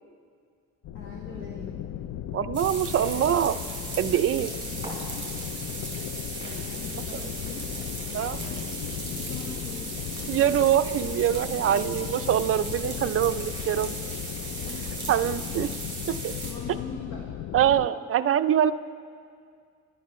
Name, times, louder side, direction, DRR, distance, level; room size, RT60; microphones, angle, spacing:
sound 1, 0.8-17.9, left 11 dB, 60° left, 0.4 m, -36 dB
voice 1, 0.9-1.8 2.4-2.6 4.1-4.9 6.4-7.7 8.1-8.8 9.1-9.9 10.3-10.4 14.3-15.1 16.4-17.2 17.6-17.9, left 4 dB, 85° left, -2 dB, 1.8 m, -43 dB
voice 2, 2.3-3.6 4.0-4.5 8.1-8.4 10.3-14.0 15.1-15.7 16.1-16.3 17.5-18.7, right 10 dB, 45° right, 10 dB, 0.4 m, -24 dB
sound 2, 2.5-16.5, right 2 dB, 15° right, 4.1 m, -37 dB
24.0 x 11.5 x 3.1 m, 2.2 s
cardioid pair, 130°, 31 cm